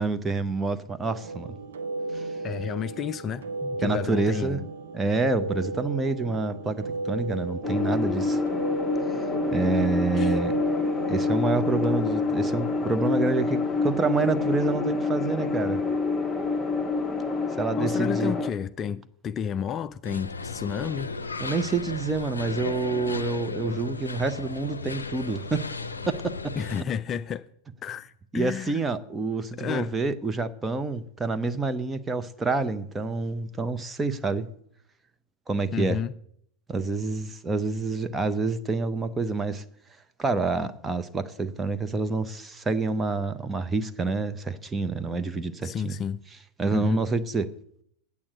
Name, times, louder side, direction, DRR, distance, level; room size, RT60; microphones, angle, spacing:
voice 1, 0.0-1.5 2.1-2.3 3.8-4.6 4.9-8.4 9.5-10.5 11.1-15.8 17.6-18.3 21.4-25.7 26.1-26.6 28.3-34.5 35.5-36.0 36.7-39.6 40.2-46.0 46.6-47.5, right 3 dB, 15° right, 0.8 m, -27 dB
sound 1, 1.0-11.3, right 2 dB, 65° right, 0.9 m, -34 dB
voice 2, 2.4-4.6 10.1-10.4 17.8-21.1 26.6-27.5 27.8-28.8 29.6-29.9 35.7-36.1 45.6-46.2 46.7-47.0, left 7 dB, 25° left, 0.4 m, -31 dB
sound 2, 7.6-18.5, left 3 dB, 5° left, 1.2 m, -27 dB
sound 3, 20.0-26.8, left 4 dB, 75° left, 0.6 m, -35 dB
8.7 x 8.4 x 7.8 m
figure-of-eight pair, 90°, 0 cm